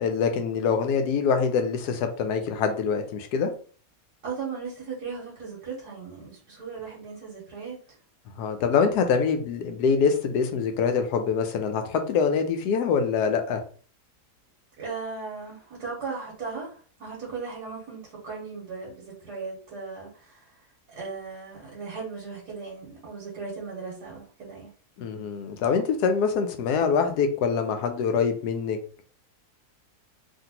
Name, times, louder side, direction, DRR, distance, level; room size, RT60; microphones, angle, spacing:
voice 1, 0.0-3.5 8.4-13.6 25.0-28.8, left 6 dB, 85° left, 6 dB, 1.2 m, -24 dB
voice 2, 4.2-7.8 14.8-20.5 20.9-24.7, right 5 dB, 85° right, -5 dB, 1.6 m, -37 dB
3.2 x 2.5 x 2.8 m, 0.43 s
omnidirectional pair, 1.7 m